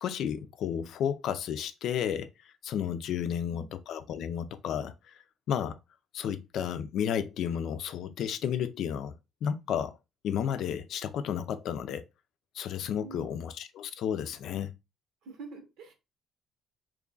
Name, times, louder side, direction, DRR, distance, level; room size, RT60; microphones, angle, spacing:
voice 1, 0.0-5.2 5.5-5.8 6.1-9.1 9.4-10.0 10.2-12.0 12.5-14.7, left 9 dB, 70° left, 0.4 m, -32 dB
voice 2, 3.2-3.7 12.9-13.4 15.2-15.9, right 4 dB, 80° right, 1.1 m, -47 dB
3.1 x 2.3 x 3.8 m
cardioid pair, 120°, 0 cm